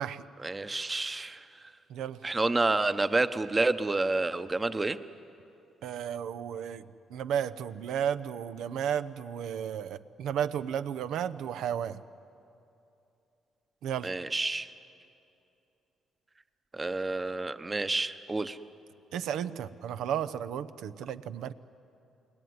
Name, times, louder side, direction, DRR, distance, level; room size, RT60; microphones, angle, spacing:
voice 1, 0.4-1.5 2.2-5.0 14.0-14.7 16.7-18.6, right 2 dB, 20° right, 12 dB, 1.0 m, -29 dB
voice 2, 5.8-6.8 7.1-12.0 13.8-14.1 19.1-21.5, right 9 dB, 80° right, 13 dB, 0.8 m, -33 dB
29.5 x 20.5 x 9.6 m, 2.8 s
cardioid pair, 90°, 0 cm